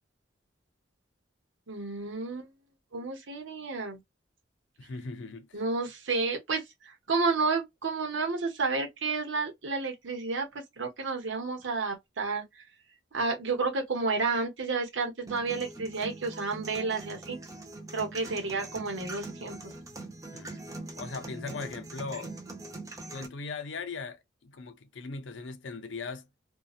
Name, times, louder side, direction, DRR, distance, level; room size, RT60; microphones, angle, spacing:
voice 1, 1.7-2.5 2.9-4.0 5.5-12.4 13.1-17.4 17.9-19.6, right 4 dB, 80° right, 0.9 m, -31 dB
voice 2, 4.8-5.6 20.3-22.3 23.1-26.3, left 4 dB, 80° left, 0.6 m, -39 dB
sound 1, 15.3-23.3, right 2 dB, 20° right, 0.5 m, -42 dB
2.7 x 2.2 x 2.4 m
head